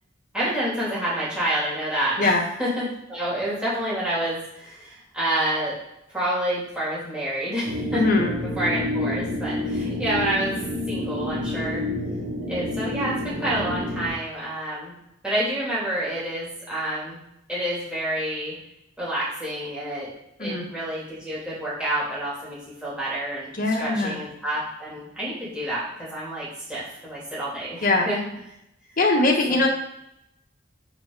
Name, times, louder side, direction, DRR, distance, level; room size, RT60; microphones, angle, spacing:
voice 1, 0.3-2.3 2.6-5.7 6.1-10.6 10.9-11.8 12.5-14.9 15.2-17.2 17.5-18.5 19.0-20.1 20.4-28.3 29.5-29.6, right 1 dB, 5° right, -9 dB, 2.9 m, -28 dB
sound 1, 7.6-14.1, left 1 dB, 85° right, 3.0 m, -28 dB
voice 2, 7.9-8.4 20.4-20.7 23.5-24.2 27.8-28.1 29.0-29.7, left 2 dB, 45° left, 1 dB, 1.3 m, -21 dB
7.9 x 4.8 x 4.0 m, 0.81 s
head